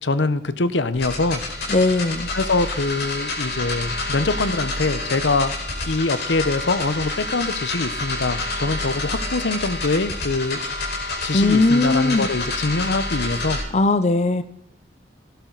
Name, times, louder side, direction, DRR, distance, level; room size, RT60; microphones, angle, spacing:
voice 1, 0.0-1.4 2.3-5.5 5.9-10.6 11.2-13.6, left 3 dB, 80° left, 13 dB, 0.9 m, -23 dB
sound 1, 0.9-13.6, left 2 dB, 60° left, 5.1 m, -28 dB
voice 2, 1.7-2.3 11.3-12.3 13.7-14.4, left 2 dB, 40° left, 11 dB, 0.6 m, -18 dB
17.5 x 11.5 x 4.0 m, 0.77 s
head